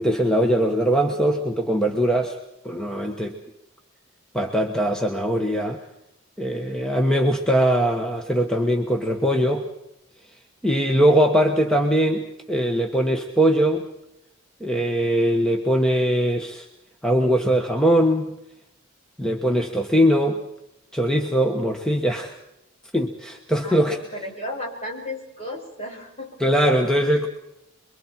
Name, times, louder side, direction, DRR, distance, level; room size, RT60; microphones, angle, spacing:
voice 1, 0.0-2.4 2.6-3.4 4.3-5.8 6.4-9.7 10.6-13.9 14.6-16.7 17.0-18.3 19.2-20.4 20.9-22.3 22.9-24.0 26.4-27.3, equal, 5° left, 2 dB, 1.3 m, -21 dB
voice 2, 23.6-26.4 27.1-27.3, left 1 dB, 30° left, 0 dB, 5.8 m, -34 dB
27.5 x 23.0 x 4.5 m, 0.83 s
head